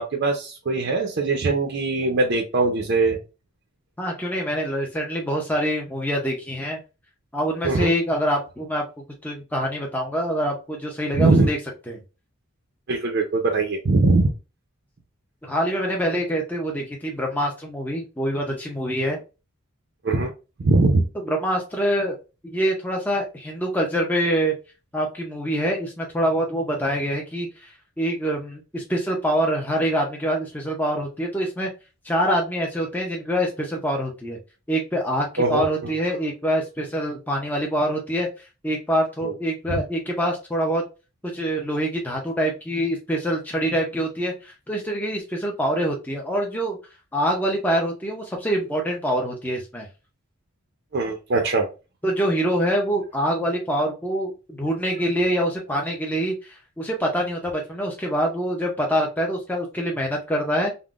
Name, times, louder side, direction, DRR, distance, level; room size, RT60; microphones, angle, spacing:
voice 1, 0.0-3.2 7.6-7.9 11.1-11.5 12.9-14.3 20.0-20.3 20.6-21.1 35.4-35.9 39.2-39.3 39.7-39.8 50.9-51.7, right 3 dB, 50° right, 2 dB, 0.4 m, -21 dB
voice 2, 4.0-6.8 7.3-8.8 9.2-11.6 11.9-12.0 15.4-19.2 21.3-22.2 22.4-24.5 24.9-27.7 28.0-31.7 32.0-34.4 34.7-38.3 38.6-40.8 41.2-46.8 47.1-49.9 52.0-60.7, equal, 10° left, 0 dB, 0.4 m, -25 dB
3.5 x 2.0 x 2.3 m, 0.30 s
head